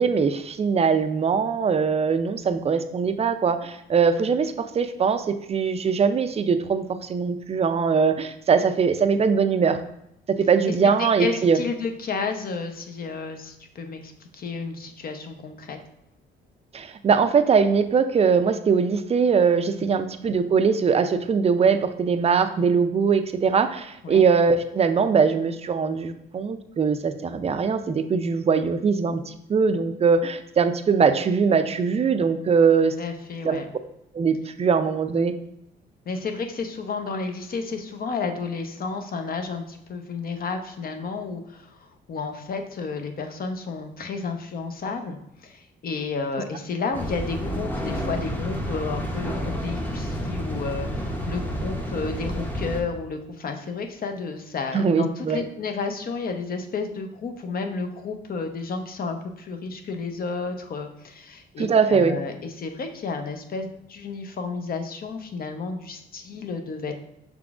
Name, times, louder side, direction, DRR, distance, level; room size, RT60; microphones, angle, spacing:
voice 1, 0.0-9.8 10.3-11.6 16.7-32.9 33.4-33.6 34.1-35.3 54.7-55.4 61.6-62.2, right 5 dB, 30° right, 9 dB, 0.4 m, -21 dB
voice 2, 11.2-15.8 24.0-24.2 33.0-33.7 36.1-41.8 42.1-66.9, left 4 dB, 50° left, 6 dB, 0.7 m, -32 dB
sound 1, 46.9-52.8, equal, 10° left, 0.7 m, -30 dB
5.8 x 3.6 x 2.4 m, 0.80 s
cardioid pair, 90°, 20 cm